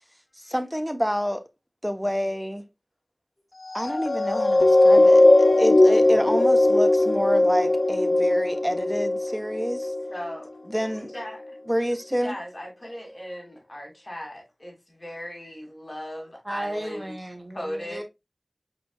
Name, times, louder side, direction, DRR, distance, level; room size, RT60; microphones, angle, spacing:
voice 1, 0.4-1.4 1.8-2.6 3.7-5.2 5.6-9.9 10.7-11.1 11.7-12.4, equal, 5° right, 0.9 m, -28 dB
sound 1, 3.7-10.4 11.0-11.1, left 2 dB, 90° left, 0.5 m, -19 dB
voice 2, 10.1-11.6 12.2-17.2 17.5-18.0, equal, 45° left, 2.4 m, -38 dB
voice 3, 16.4-18.0, right 1 dB, 20° right, 1.3 m, -34 dB
5.1 x 4.5 x 2.2 m
wide cardioid pair, 45°, 0 cm